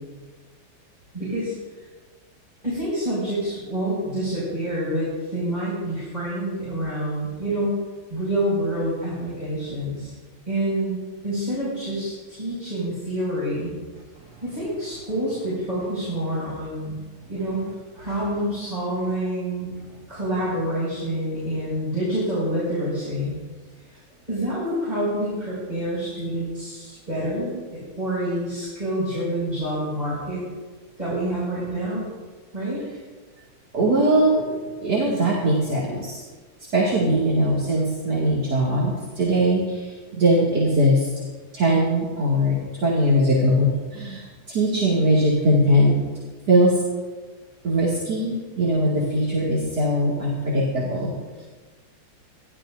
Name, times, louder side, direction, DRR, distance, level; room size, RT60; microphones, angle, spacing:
voice 1, 1.1-1.5 2.6-7.8 8.1-10.1 10.5-11.0 11.2-13.7 14.4-17.0 17.3-17.7 17.9-19.7 20.1-23.3 24.3-30.4 31.0-32.1 32.5-32.8, right 1 dB, 20° right, -9 dB, 6.0 m, -27 dB
voice 2, 33.7-36.2 36.7-41.1 41.5-46.0 46.5-46.8 47.6-51.1, right 1 dB, 55° right, -4 dB, 2.8 m, -21 dB
29.5 x 12.5 x 2.6 m, 1.4 s
omnidirectional pair, 2.2 m